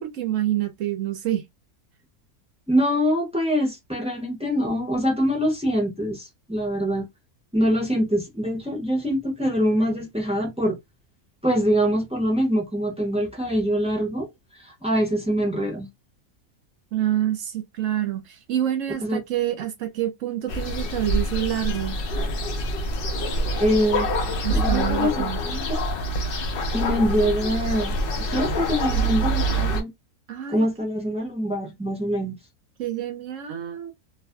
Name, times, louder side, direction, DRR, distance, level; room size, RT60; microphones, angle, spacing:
voice 1, 0.0-1.4 16.9-22.0 24.4-25.4 30.3-30.7 32.8-33.9, right 12 dB, 70° right, 0.9 m, -27 dB
voice 2, 2.7-7.0 7.5-10.8 11.4-14.3 14.6-15.9 19.0-19.2 23.6-24.1 24.5-25.8 26.7-28.0 28.3-29.9 30.5-32.4, equal, 5° right, 0.6 m, -24 dB
sound 1, 20.5-29.8, equal, 65° left, 0.5 m, -26 dB
2.5 x 2.5 x 2.2 m
omnidirectional pair, 1.6 m